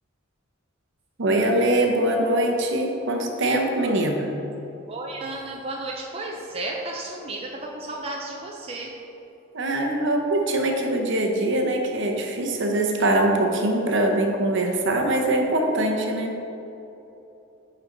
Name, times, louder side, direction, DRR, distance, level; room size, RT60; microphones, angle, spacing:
voice 1, 1.2-4.3 9.5-16.4, right 1 dB, 60° right, 2 dB, 0.9 m, -23 dB
voice 2, 4.9-8.9, right 2 dB, 30° right, -1 dB, 0.6 m, -33 dB
9.5 x 4.3 x 3.9 m, 2.9 s
head